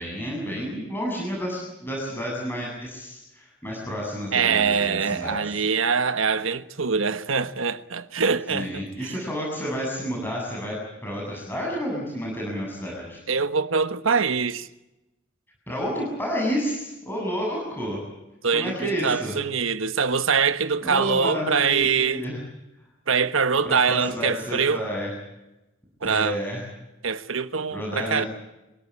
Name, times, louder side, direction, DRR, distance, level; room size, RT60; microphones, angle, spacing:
voice 1, 0.0-5.5 8.5-10.8 11.0-13.2 15.7-18.0 18.5-19.3 20.8-22.4 23.6-25.1 26.0-26.6 27.7-28.3, equal, 10° left, 7.7 m, -30 dB
voice 2, 4.3-9.2 13.3-14.7 18.4-22.2 23.1-24.8 26.0-26.4 27.0-28.2, right 5 dB, 80° right, 1.3 m, -24 dB
25.5 x 17.5 x 8.6 m
head